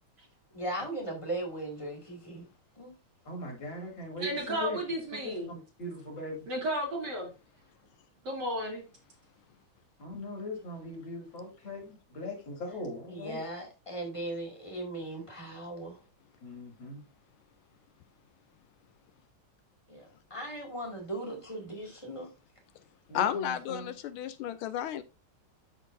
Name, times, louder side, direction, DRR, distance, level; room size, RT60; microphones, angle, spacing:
voice 1, 0.5-2.5 2.8-3.0 13.1-16.0 19.9-22.3, right 1 dB, 15° left, 2.2 m, -38 dB
voice 2, 3.3-4.3 4.6-4.8 5.2-6.4 10.0-13.4 16.4-17.0 23.1-23.9, left 1 dB, 65° left, 3.2 m, -40 dB
voice 3, 4.2-5.5 6.5-7.3 8.2-8.8, right 1 dB, 55° right, 3.1 m, -33 dB
voice 4, 23.1-25.0, left 10 dB, 80° left, 1.4 m, -32 dB
12.5 x 4.3 x 2.6 m
omnidirectional pair, 2.3 m